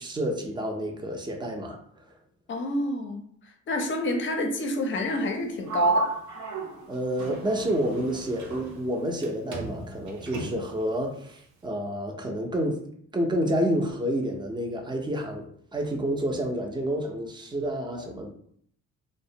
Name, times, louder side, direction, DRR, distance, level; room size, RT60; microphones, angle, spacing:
voice 1, 0.0-2.1 6.9-12.8 13.1-18.3, equal, 15° right, 2 dB, 0.5 m, -29 dB
voice 2, 2.5-3.3 3.7-6.1, left 2 dB, 40° left, 4 dB, 0.5 m, -28 dB
Sliding door, 5.7-9.3 9.5-10.8, right 3 dB, 75° right, 0.7 m, -32 dB
2.4 x 2.1 x 2.7 m, 0.63 s
cardioid pair, 90°, 30 cm